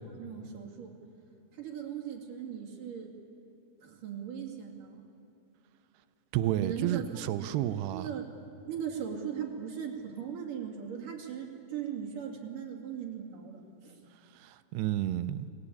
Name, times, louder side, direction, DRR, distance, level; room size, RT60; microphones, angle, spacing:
voice 1, 0.1-1.0 1.5-3.1 3.8-5.1 6.6-7.1 7.4-7.6 7.9-8.4 8.7-14.0, right 8 dB, 55° right, 4.2 m, -39 dB
voice 2, 6.3-8.1 14.4-15.5, right 12 dB, 85° right, 2.9 m, -31 dB
29.0 x 20.5 x 8.6 m
omnidirectional pair, 4.7 m